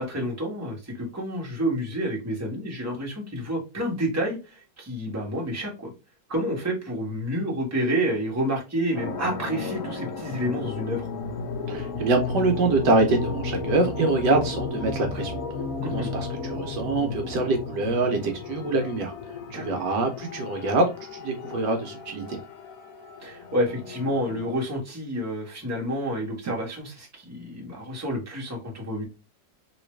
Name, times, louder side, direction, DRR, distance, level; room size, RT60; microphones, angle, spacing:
voice 1, 0.0-5.9 6.3-11.1 15.8-16.1 19.5-19.8 23.2-29.0, equal, 10° right, 1.1 m, -29 dB
sound 1, 8.9-24.5, left 4 dB, 60° left, 1.0 m, -34 dB
voice 2, 11.7-15.4 15.8-20.9 21.1-22.4, right 3 dB, 70° right, 1.3 m, -25 dB
3.1 x 3.0 x 3.2 m
omnidirectional pair, 2.0 m